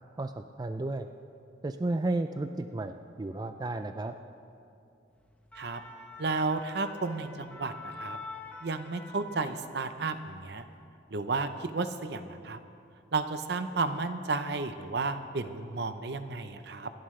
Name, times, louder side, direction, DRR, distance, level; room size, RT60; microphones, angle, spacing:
voice 1, 0.2-1.1 1.6-4.1, right 2 dB, 20° right, 8 dB, 0.4 m, -33 dB
sound 1, 5.3-10.0 10.4-10.6, left 3 dB, 5° left, 1.0 m, -46 dB
voice 2, 6.2-8.2 8.6-10.6 11.1-12.6 13.1-16.9, right 3 dB, 60° right, 9 dB, 0.7 m, -32 dB
27.0 x 11.0 x 3.3 m, 2.5 s
head